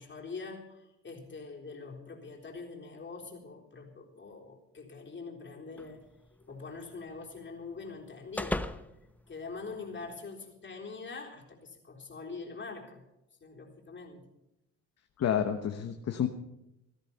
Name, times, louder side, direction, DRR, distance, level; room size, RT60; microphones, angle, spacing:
voice 1, 0.0-6.0 6.5-13.0 13.4-14.3, left 4 dB, 40° left, 0 dB, 3.8 m, -44 dB
sound 1, 5.8-10.2, left 1 dB, 5° left, 0.8 m, -41 dB
voice 2, 15.2-16.3, left 9 dB, 55° left, 6 dB, 1.2 m, -29 dB
17.5 x 13.0 x 5.7 m, 0.89 s
cardioid pair, 90°, 30 cm